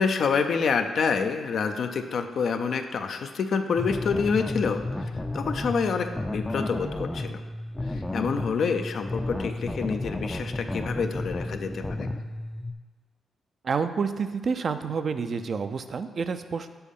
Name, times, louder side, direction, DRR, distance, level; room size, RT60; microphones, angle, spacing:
voice 1, 0.0-7.4 7.9-12.1, left 5 dB, 65° left, 7 dB, 0.5 m, -27 dB
sound 1, 3.8-12.7, left 2 dB, 15° left, 0.4 m, -32 dB
voice 2, 13.6-16.7, right 5 dB, 55° right, 9 dB, 0.4 m, -29 dB
6.9 x 4.1 x 5.4 m, 1.5 s
cardioid pair, 70°, 0 cm